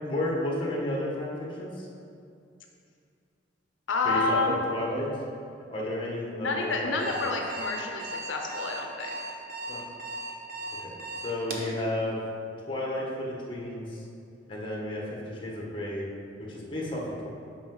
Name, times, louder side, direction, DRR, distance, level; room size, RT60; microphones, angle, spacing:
voice 1, 0.0-1.9 4.0-5.1 5.7-6.9 7.2-7.3 9.7-9.8 10.8-11.0 11.2-12.2 12.7-14.0 14.5-16.1 16.4-17.3, left 1 dB, 25° left, -3 dB, 1.3 m, -32 dB
voice 2, 3.9-4.6 6.3-9.1, left 3 dB, 80° left, 2 dB, 0.6 m, -29 dB
Alarm, 7.0-11.7, right 2 dB, 50° right, 0.9 m, -37 dB
8.4 x 5.3 x 3.8 m, 2.4 s
head